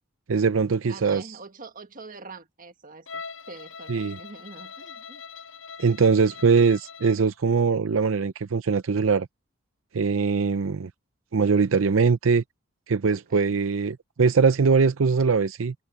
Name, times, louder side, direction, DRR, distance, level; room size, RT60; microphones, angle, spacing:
voice 1, 0.3-1.2 3.9-4.2 5.8-9.3 9.9-10.9 11.3-12.4 12.9-15.7, right 5 dB, 80° right, 0.6 m, -22 dB
voice 2, 0.9-5.2 13.1-13.6, right 4 dB, 45° right, 1.7 m, -45 dB
Bowed string instrument, 3.1-7.3, left 5 dB, 70° left, 6.9 m, -42 dB
head